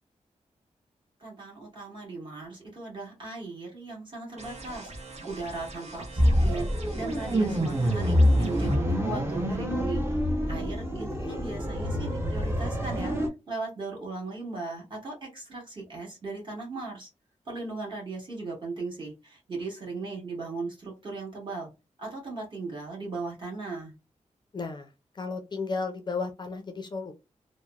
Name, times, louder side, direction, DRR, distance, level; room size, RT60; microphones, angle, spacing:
voice 1, 1.2-6.7 6.9-13.1 13.5-17.1 17.5-21.7 22.0-23.9, right 3 dB, 40° right, -2 dB, 1.4 m, -37 dB
sound 1, 4.4-8.8, right 2 dB, 60° right, 0.8 m, -43 dB
sound 2, 6.2-13.3, equal, 20° right, 0.6 m, -26 dB
voice 2, 11.1-11.4 24.5-27.1, left 4 dB, 35° left, 5 dB, 0.4 m, -34 dB
2.9 x 2.0 x 2.2 m, 0.26 s
wide cardioid pair, 150°, 13 cm